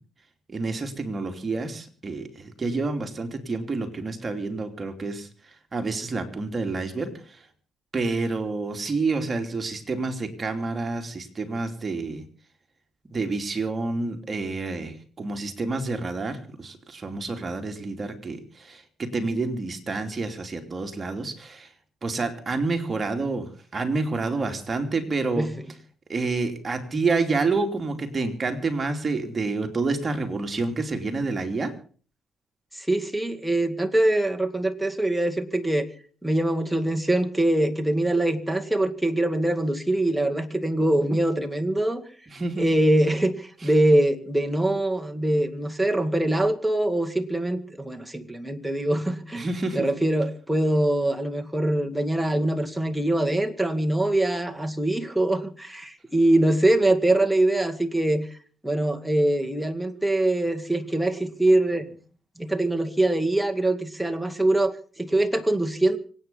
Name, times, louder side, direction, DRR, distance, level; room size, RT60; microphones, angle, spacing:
voice 1, 0.5-5.3 5.7-7.4 7.9-12.2 13.1-21.7 22.0-25.5 26.1-31.7 42.3-42.7 49.4-49.9, right 3 dB, 30° right, 5 dB, 2.8 m, -28 dB
voice 2, 32.7-35.9 36.2-42.0 42.6-49.5 49.7-58.4 58.6-62.0 62.4-66.0, right 1 dB, 5° right, 5 dB, 2.1 m, -23 dB
25.5 x 9.1 x 5.6 m, 0.42 s
cardioid pair, 90°, 0 cm